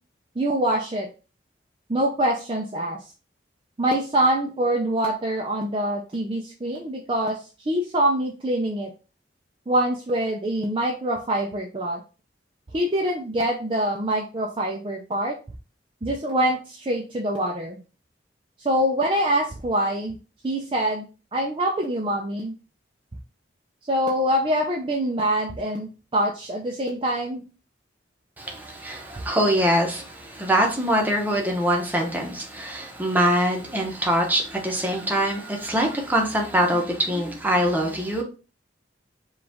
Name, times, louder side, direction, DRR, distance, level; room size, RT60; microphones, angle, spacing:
voice 1, 0.4-1.1 1.9-3.0 3.8-7.4 7.7-8.9 9.7-12.0 12.7-15.4 16.0-17.8 18.6-20.2 20.4-22.5 23.9-27.4 29.2-29.3, right 1 dB, 30° right, 0.5 m, -25 dB
voice 2, 28.4-38.2, equal, 10° right, 0.9 m, -23 dB
4.9 x 2.4 x 3.5 m
head